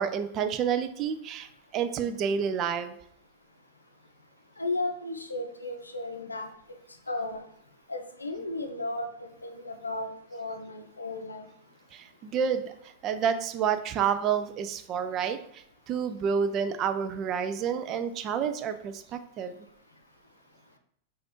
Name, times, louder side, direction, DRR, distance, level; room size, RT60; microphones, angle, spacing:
voice 1, 0.0-1.5 1.7-3.0 11.9-19.5, right 7 dB, 35° right, 9 dB, 0.4 m, -29 dB
voice 2, 4.6-6.5 7.1-7.4 7.9-9.1 9.4-11.5, left 2 dB, 80° left, 5 dB, 0.5 m, -34 dB
5.8 x 2.5 x 3.0 m, 0.68 s
figure-of-eight pair, 90°, 0 cm